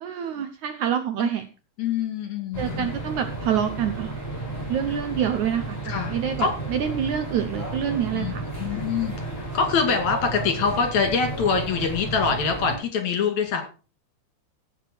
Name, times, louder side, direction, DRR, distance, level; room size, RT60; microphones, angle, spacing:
voice 1, 0.0-1.5 2.6-4.1 4.7-5.8 6.1-8.4, right 9 dB, 70° right, 8 dB, 1.9 m, -26 dB
voice 2, 1.8-2.9 5.8-6.5 8.1-8.3 8.6-13.6, left 5 dB, 55° left, 4 dB, 3.5 m, -25 dB
sound 1, 2.5-12.8, right 2 dB, 5° left, 7.7 m, -33 dB
17.0 x 6.5 x 4.6 m, 0.35 s
omnidirectional pair, 4.2 m